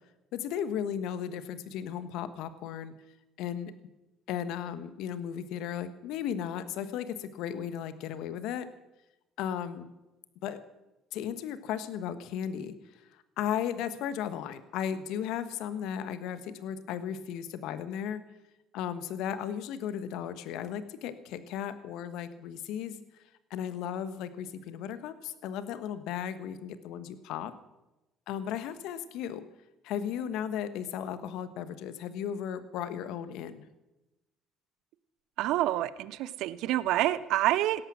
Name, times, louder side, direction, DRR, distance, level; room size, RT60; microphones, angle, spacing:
voice 1, 0.3-2.9 3.4-3.7 4.3-8.7 9.4-9.9 10.4-10.6 11.1-12.7 13.4-18.2 18.7-23.0 23.5-27.5 28.3-29.4 29.8-33.6, left 9 dB, 70° left, 12 dB, 1.2 m, -35 dB
voice 2, 35.4-37.8, right 14 dB, 70° right, 17 dB, 0.6 m, -27 dB
17.0 x 13.5 x 6.2 m, 1.0 s
hypercardioid pair, 60°, 0 cm